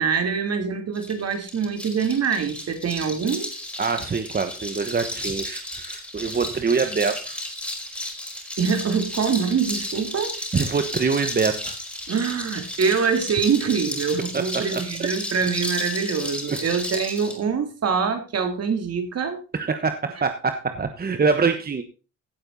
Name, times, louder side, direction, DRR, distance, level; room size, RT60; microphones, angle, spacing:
voice 1, 0.0-3.5 8.6-10.4 12.1-19.4, right 6 dB, 55° right, 6 dB, 3.2 m, -24 dB
sound 1, 0.9-17.4, left 1 dB, 5° left, 4.8 m, -33 dB
voice 2, 3.8-7.4 10.5-11.8 14.3-15.1 16.5-16.6 19.5-21.8, right 5 dB, 30° right, 8 dB, 1.2 m, -25 dB
16.5 x 7.8 x 4.0 m, 0.33 s
cardioid pair, 90°, 30 cm